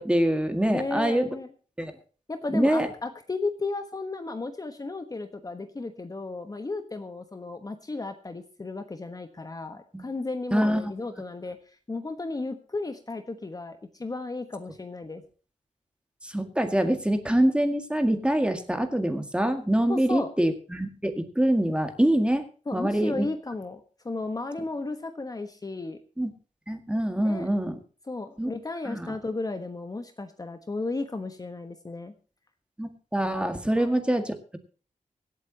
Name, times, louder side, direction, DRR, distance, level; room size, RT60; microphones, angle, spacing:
voice 1, 0.0-1.3 1.8-1.9 2.5-2.9 9.9-10.1 10.5-10.9 16.2-22.5 22.7-23.3 26.2-26.3 26.7-27.8 28.4-28.5 28.9-29.1 32.8-34.6, right 1 dB, 10° right, 7 dB, 1.9 m, -25 dB
voice 2, 0.7-1.5 2.3-15.2 19.9-20.3 22.7-26.0 27.2-27.5 28.1-32.1 33.7-33.9, left 3 dB, 30° left, 8 dB, 1.3 m, -34 dB
25.0 x 8.3 x 2.9 m, 0.39 s
wide cardioid pair, 130°, 13 cm